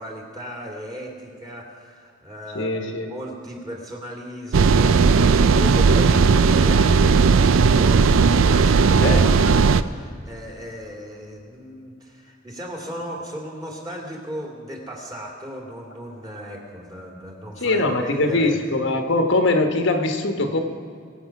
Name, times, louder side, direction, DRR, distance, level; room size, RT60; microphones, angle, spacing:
voice 1, 0.0-18.6, equal, 20° right, 0 dB, 2.4 m, -36 dB
voice 2, 2.5-3.1 9.0-9.2 17.6-20.6, left 2 dB, 65° left, 5 dB, 1.2 m, -21 dB
sound 1, 4.5-9.8, right 5 dB, 75° right, 0.4 m, -16 dB
23.0 x 8.2 x 5.9 m, 2.2 s
head